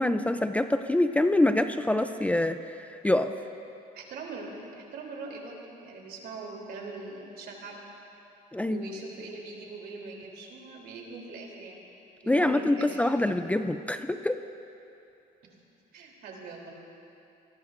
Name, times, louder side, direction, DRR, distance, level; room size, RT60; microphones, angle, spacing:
voice 1, 0.0-3.3 8.5-8.8 12.3-14.4, left 1 dB, 10° left, 8 dB, 0.5 m, -25 dB
voice 2, 3.9-7.8 8.7-11.8 12.2-13.0 15.9-16.7, right 3 dB, 70° right, -1 dB, 3.4 m, -41 dB
28.0 x 19.5 x 2.6 m, 2.8 s
cardioid pair, 110°, 17 cm